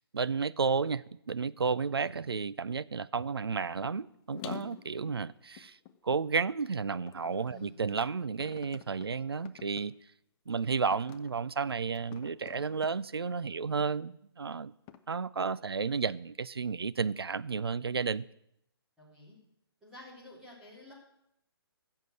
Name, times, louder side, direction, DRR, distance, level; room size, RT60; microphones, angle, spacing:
voice 1, 0.0-5.8 6.0-9.9 10.5-14.7 15.1-18.2, right 5 dB, 70° right, 0.5 m, -32 dB
sound 1, 3.8-4.0 4.3-6.3 6.9-7.7 8.4-9.1 9.4-9.8 10.5-10.6 10.9-11.3 11.9-12.9 13.8-13.9 14.9-15.0, left 11 dB, 20° left, 0.5 m, -47 dB
voice 2, 7.5-7.8 19.0-19.4 19.8-20.9, left 1 dB, 5° right, 3.7 m, -51 dB
14.0 x 7.4 x 7.7 m
figure-of-eight pair, 135°, 13 cm